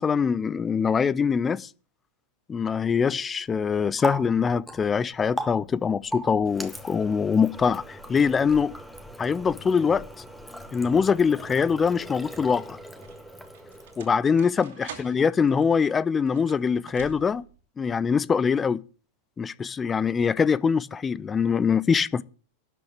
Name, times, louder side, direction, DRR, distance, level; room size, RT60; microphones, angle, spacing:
voice 1, 0.0-1.7 2.5-8.8 9.2-10.1 10.7-12.8 14.0-17.4 17.8-18.8 19.4-22.2, left 6 dB, 20° left, 0.6 m, -23 dB
Water tap faucet, 3.5-14.3, equal, ahead, 1.7 m, -39 dB
sound 1, 12.3-17.6, right 7 dB, 60° right, 2.7 m, -47 dB
12.0 x 7.8 x 8.4 m
figure-of-eight pair, 90°, 0 cm